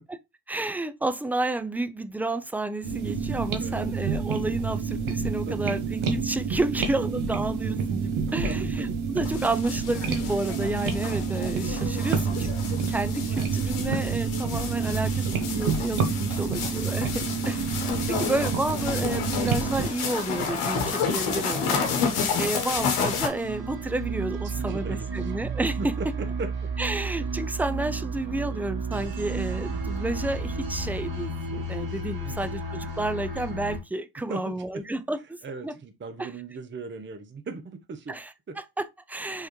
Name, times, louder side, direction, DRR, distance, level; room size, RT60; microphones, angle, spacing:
voice 1, 0.5-12.5 12.9-17.6 18.1-21.9 22.4-25.8 26.8-35.4 35.6-35.7 36.2-36.3 38.1-38.3 38.8-39.5, right 2 dB, 5° right, 0.3 m, -31 dB
sound 1, 2.8-19.9, right 5 dB, 75° right, 1.0 m, -28 dB
voice 2, 3.6-3.9 5.5-5.8 7.3-7.4 8.0-8.9 15.2-15.9 16.4-16.7 17.4-17.7 21.7-22.3 24.4-25.3 25.8-26.7 32.1-32.6 34.2-34.8 35.4-38.2 38.5-38.6, right 3 dB, 25° right, 0.7 m, -39 dB
sound 2, 9.2-23.3, left 5 dB, 80° left, 1.1 m, -30 dB
sound 3, 22.9-33.8, right 3 dB, 45° right, 1.8 m, -32 dB
3.7 x 3.2 x 3.0 m
supercardioid pair, 55°, 49 cm